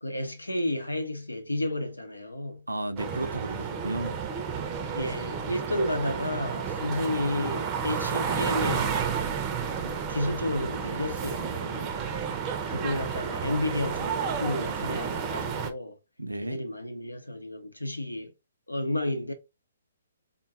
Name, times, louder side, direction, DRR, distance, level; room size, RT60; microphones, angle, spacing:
voice 1, 0.0-2.6 4.9-9.1 9.8-11.9 12.7-16.0 16.4-18.3 18.7-19.3, left 1 dB, 85° left, 0.8 m, -31 dB
voice 2, 2.7-4.2 16.2-16.6, right 1 dB, 85° right, 0.5 m, -33 dB
sound 1, 3.0-15.7, right 6 dB, 25° right, 0.5 m, -31 dB
3.7 x 2.2 x 2.7 m
figure-of-eight pair, 130°, 0 cm